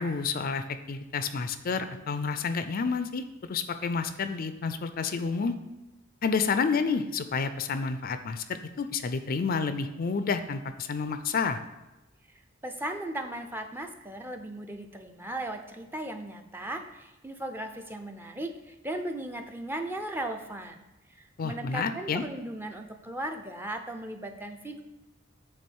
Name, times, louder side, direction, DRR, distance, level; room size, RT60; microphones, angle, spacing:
voice 1, 0.0-5.6 6.2-11.6 21.4-22.2, left 5 dB, 45° left, 10 dB, 0.4 m, -30 dB
voice 2, 12.3-20.8 21.1-24.8, right 1 dB, 10° right, 5 dB, 0.5 m, -37 dB
8.5 x 3.5 x 6.2 m, 1.0 s
head